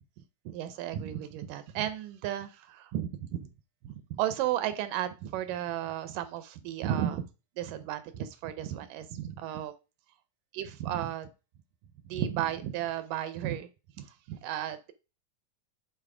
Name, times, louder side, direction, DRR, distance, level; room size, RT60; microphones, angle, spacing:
voice 1, 0.5-3.5 3.8-7.2 7.6-9.7 10.5-11.3 12.1-13.7 14.0-14.9, right 11 dB, 80° right, 12 dB, 2.1 m, -34 dB
9.0 x 3.9 x 4.8 m, 0.31 s
omnidirectional pair, 4.0 m